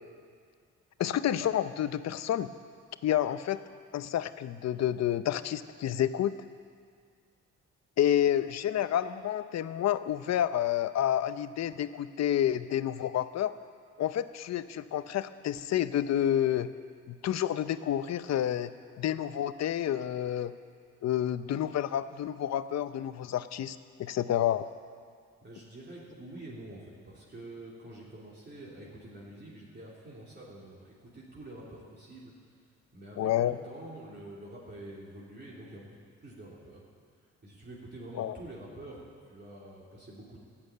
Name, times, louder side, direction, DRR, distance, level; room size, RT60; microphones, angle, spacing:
voice 1, 1.0-2.5 3.0-3.6 3.9-6.3 8.0-13.5 14.0-16.7 17.1-18.7 19.0-20.5 21.0-24.7 33.2-33.6 38.2-38.4, left 11 dB, 60° left, 13 dB, 0.7 m, -29 dB
voice 2, 25.4-32.3 32.9-36.8 37.4-40.4, right 1 dB, 35° right, -5 dB, 3.2 m, -47 dB
12.5 x 8.9 x 9.1 m, 2.1 s
cardioid pair, 90°, 30 cm